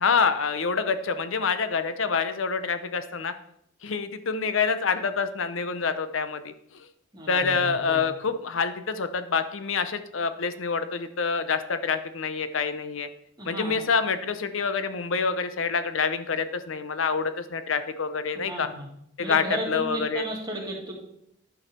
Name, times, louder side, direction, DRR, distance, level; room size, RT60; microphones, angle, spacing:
voice 1, 0.0-3.3 3.8-6.5 7.3-13.1 13.4-18.7 19.2-20.3, left 5 dB, 85° left, 11 dB, 0.7 m, -27 dB
voice 2, 7.1-8.0 13.4-13.8 18.5-18.9 19.2-20.9, right 1 dB, 20° right, -1 dB, 2.2 m, -34 dB
11.0 x 6.3 x 4.4 m, 0.73 s
head